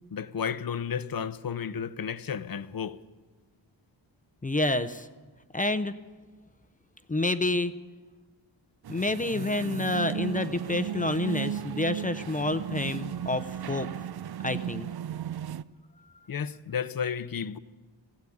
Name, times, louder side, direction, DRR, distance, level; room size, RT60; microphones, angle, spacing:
voice 1, 0.1-3.0 16.3-17.6, left 7 dB, 50° left, 0.8 m, -32 dB
voice 2, 4.4-5.1 5.5-5.9 7.1-7.7 8.9-13.9 14.4-14.9, left 2 dB, 15° left, 0.7 m, -28 dB
sound 1, 8.8-15.6, right 10 dB, 55° right, 0.6 m, -35 dB
20.0 x 15.5 x 8.6 m
wide cardioid pair, 155°, 46 cm